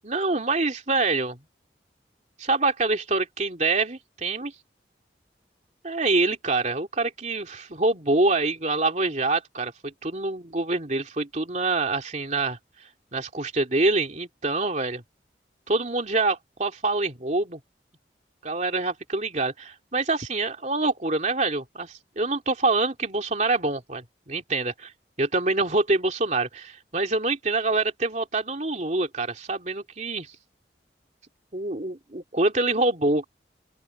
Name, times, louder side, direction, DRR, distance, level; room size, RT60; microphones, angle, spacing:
voice 1, 0.0-1.4 2.4-4.5 5.8-12.6 13.1-15.0 15.7-17.6 18.4-24.9 25.2-30.3 31.5-33.2, right 3 dB, 40° right, 2.8 m, -25 dB
open air
head